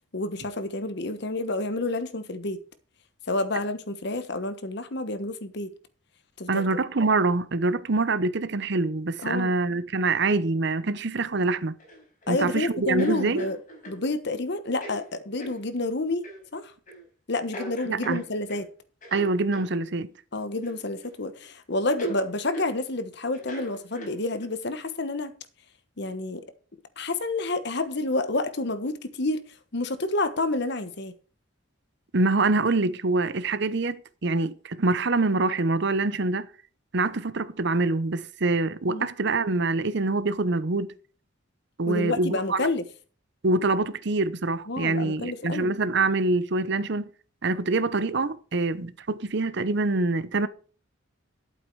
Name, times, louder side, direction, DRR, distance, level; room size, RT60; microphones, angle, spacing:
voice 1, 0.1-2.6 3.3-5.7 6.4-6.7 9.2-9.5 12.3-13.6 13.9-16.2 16.5-16.7 17.3-18.7 20.3-25.3 26.0-26.4 27.0-29.4 29.7-31.1 38.9-39.1 41.9-42.8 44.7-45.7, left 2 dB, 55° left, 1.2 m, -29 dB
voice 2, 6.5-11.8 12.3-13.5 17.9-18.2 19.1-20.1 32.1-36.5 36.9-40.9 41.8-42.7 43.4-47.1 47.4-50.5, right 3 dB, 60° right, 0.8 m, -25 dB
Green frog croaking, 11.8-12.4 13.0-14.0 14.7-15.0 15.4-15.6 16.2-16.4 16.9-17.0 17.5-18.6 19.0-19.7 20.6-21.1 21.4-21.5 22.0-22.2 22.5-22.7 23.3-24.4, right 1 dB, 40° left, 5.1 m, -40 dB
11.5 x 8.5 x 4.7 m
head